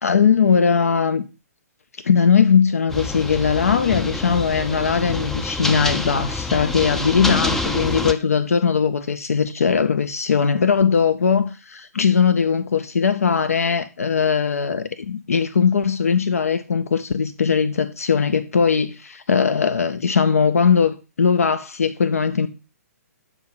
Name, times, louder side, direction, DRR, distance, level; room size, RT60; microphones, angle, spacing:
voice 1, 0.0-1.2 2.0-22.5, left 6 dB, 65° left, 0.6 m, -19 dB
sound 1, 2.9-8.1, left 2 dB, 5° left, 0.4 m, -27 dB
8.0 x 4.3 x 4.1 m
figure-of-eight pair, 125°, 9 cm